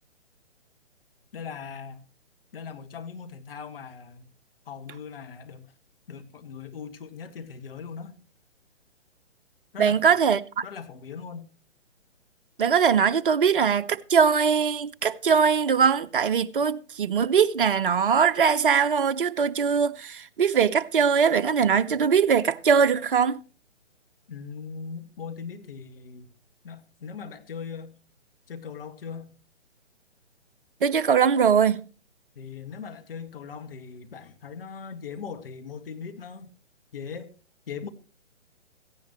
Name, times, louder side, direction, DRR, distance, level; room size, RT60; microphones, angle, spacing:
voice 1, 1.3-2.0 2.5-4.3 4.7-5.7 6.1-8.2 9.7-10.2 10.6-11.5 24.3-26.3 26.6-28.0 28.5-29.4 32.4-36.5 36.9-37.3 37.7-37.9, left 6 dB, 50° left, 1.9 m, -39 dB
voice 2, 9.8-10.4 12.6-23.4 30.8-31.8, right 6 dB, 45° right, 0.9 m, -21 dB
16.5 x 15.0 x 3.0 m
figure-of-eight pair, 135°, 36 cm